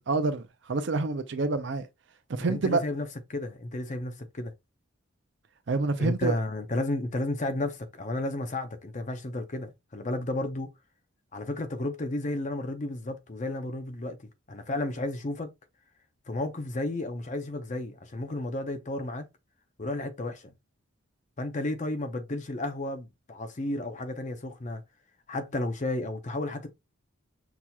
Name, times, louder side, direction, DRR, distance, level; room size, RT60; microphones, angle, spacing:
voice 1, 0.0-1.9 2.3-2.8 5.7-6.4, right 3 dB, 60° right, 0.5 m, -27 dB
voice 2, 2.5-4.5 6.0-10.7 11.3-14.2 14.5-15.5 16.3-19.3 19.8-20.5 21.4-24.8 25.3-26.7, left 2 dB, 35° left, 0.6 m, -32 dB
6.0 x 2.8 x 2.3 m
head